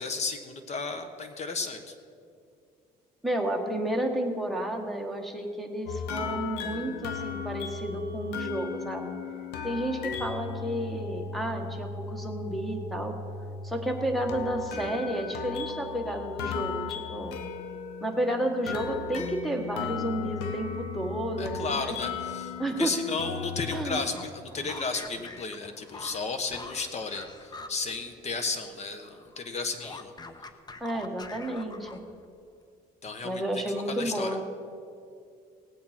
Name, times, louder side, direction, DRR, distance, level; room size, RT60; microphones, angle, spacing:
voice 1, 0.0-1.9 21.4-30.1 33.0-34.4, left 4 dB, 40° left, 7 dB, 1.3 m, -34 dB
voice 2, 3.2-9.2 9.6-13.2 13.6-17.4 18.0-22.0 22.6-23.0 23.7-24.1 30.8-32.0 33.2-34.4, right 1 dB, ahead, 4 dB, 1.5 m, -31 dB
sound 1, 5.9-23.9, left 6 dB, 85° left, 0.9 m, -37 dB
sound 2, 24.0-28.7 29.0-32.3, left 3 dB, 25° left, 0.8 m, -45 dB
18.0 x 8.5 x 4.4 m, 2.3 s
cardioid pair, 110°, 17 cm